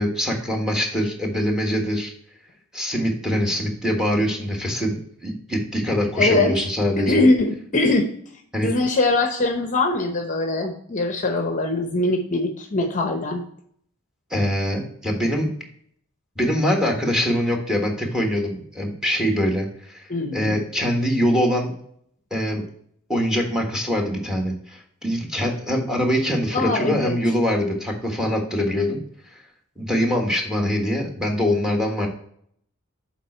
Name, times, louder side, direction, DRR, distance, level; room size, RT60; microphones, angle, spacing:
voice 1, 0.0-2.1 2.7-7.3 8.5-8.7 14.3-15.5 16.4-21.7 22.3-22.7 23.1-29.0 29.8-32.1, equal, 5° right, 1 dB, 1.4 m, -23 dB
voice 2, 6.2-6.5 7.0-8.1 8.6-13.4 20.1-20.6 26.5-27.2, left 2 dB, 35° left, 4 dB, 0.8 m, -22 dB
7.4 x 4.3 x 4.3 m, 0.65 s
head